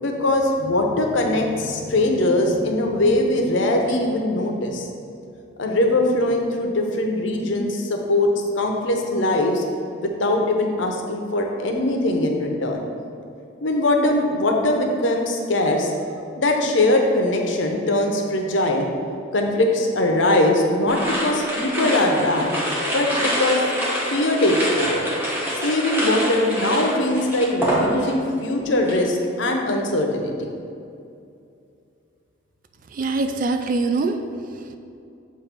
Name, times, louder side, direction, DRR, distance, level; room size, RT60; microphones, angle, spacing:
voice 1, 0.0-4.9 5.6-8.3 8.6-9.6 10.0-12.8 13.6-15.9 16.4-18.9 19.3-22.5 22.9-23.6 24.1-25.1 25.6-30.5, left 1 dB, 65° left, 2 dB, 0.7 m, -21 dB
sound 1, 20.9-28.3 28.6-29.0, equal, 10° right, 1.0 m, -26 dB
voice 2, 32.9-34.8, right 3 dB, 45° right, 7 dB, 0.3 m, -24 dB
7.2 x 2.6 x 5.2 m, 2.5 s
head